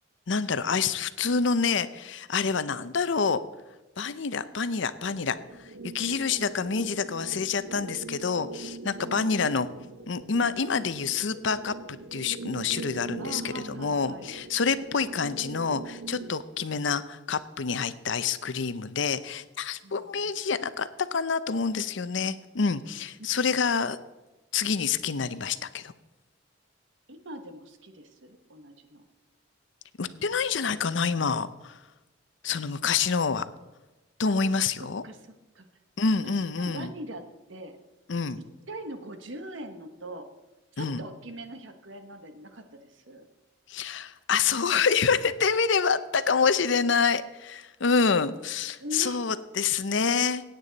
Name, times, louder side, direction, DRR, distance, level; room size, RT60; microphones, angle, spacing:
voice 1, 0.3-3.4 4.0-9.7 10.1-24.0 24.5-25.9 30.0-31.8 32.4-33.5 34.2-35.0 36.0-36.9 38.1-38.4 40.8-41.0 43.7-50.4, left 5 dB, 65° left, 14 dB, 0.6 m, -27 dB
sound 1, 4.9-16.4, right 3 dB, 85° right, 0.9 m, -42 dB
voice 2, 13.2-14.3 19.8-20.4 27.1-29.0 35.0-35.2 35.5-35.7 36.2-37.2 37.5-37.8 38.7-40.3 40.7-43.3 48.8-49.3, right 1 dB, 70° right, 7 dB, 1.2 m, -41 dB
16.5 x 9.1 x 4.0 m, 1.1 s
head